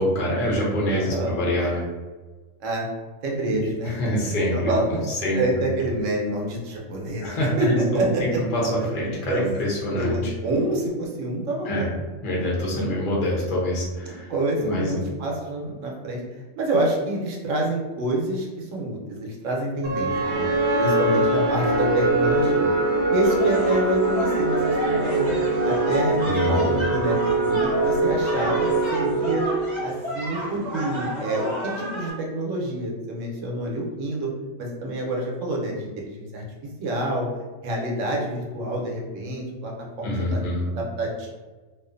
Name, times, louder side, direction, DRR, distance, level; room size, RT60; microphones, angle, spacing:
voice 1, 0.0-1.9 3.5-5.4 7.2-10.3 11.6-11.9 12.2-14.3 14.6-14.9 26.2-26.8 40.0-40.7, equal, 50° left, -4 dB, 0.8 m, -25 dB
voice 2, 0.9-1.4 2.6-2.9 3.2-3.9 4.2-5.1 5.3-8.4 8.8-8.9 9.3-9.5 9.9-11.9 14.0-16.2 16.6-20.5 20.8-22.7 23.1-25.3 25.6-27.2 27.4-29.4 29.8-34.3 34.6-36.4 36.8-37.3 37.6-39.7 40.0-40.4 40.7-41.3, right 1 dB, 90° right, -1 dB, 1.0 m, -27 dB
sound 1, 19.8-30.0, right 2 dB, 65° right, 0.9 m, -23 dB
sound 2, 23.2-32.1, equal, 30° right, 0.7 m, -32 dB
2.4 x 2.4 x 2.4 m, 1.3 s
omnidirectional pair, 1.3 m